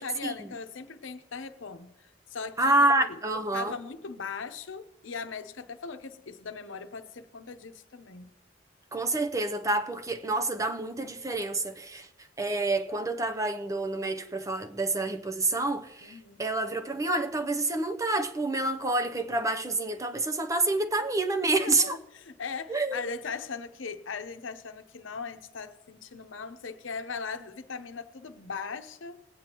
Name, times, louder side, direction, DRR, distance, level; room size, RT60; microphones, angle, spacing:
voice 1, 0.0-3.2 3.5-8.3 16.0-16.4 21.5-29.2, left 5 dB, 90° left, 0.8 m, -39 dB
voice 2, 2.6-3.8 8.9-12.1 12.4-22.0 22.7-23.0, right 2 dB, 15° right, 0.6 m, -28 dB
20.0 x 8.9 x 3.0 m
head